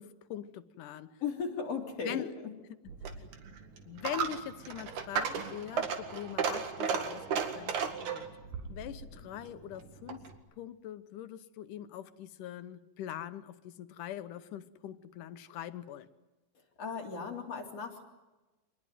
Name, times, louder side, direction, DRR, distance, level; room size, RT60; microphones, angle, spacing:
voice 1, 0.0-1.2 2.0-2.3 3.9-8.3 8.7-10.2 10.6-16.1, left 11 dB, 80° left, 2.6 m, -42 dB
voice 2, 1.2-2.5 16.5-18.0, left 5 dB, 50° left, 4.4 m, -37 dB
Coin (dropping), 2.9-10.4, right 6 dB, 70° right, 3.4 m, -35 dB
26.0 x 20.5 x 9.3 m
omnidirectional pair, 3.7 m